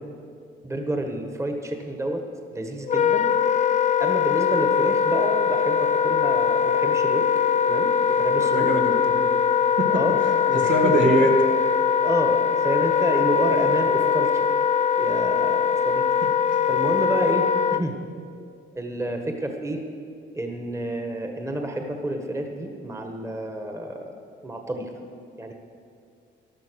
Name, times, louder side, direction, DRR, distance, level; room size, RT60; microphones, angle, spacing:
voice 1, 0.6-2.2 2.5-3.3 4.0-7.3 7.6-8.7 9.9-10.2 10.5-10.9 12.0-14.6 15.0-16.0 16.7-17.9 18.7-19.8 20.3-24.1 24.4-24.9 25.4-25.5, right 1 dB, 15° right, 3 dB, 1.5 m, -29 dB
Wind instrument woodwind instrument, 2.8-17.8, left 7 dB, 35° left, 0.5 m, -21 dB
voice 2, 8.4-9.4 9.8-9.9 10.2-10.3 10.7-11.3, right 1 dB, 70° right, 1 dB, 2.4 m, -23 dB
14.5 x 11.5 x 6.4 m, 2.4 s
cardioid pair, 90°, 20 cm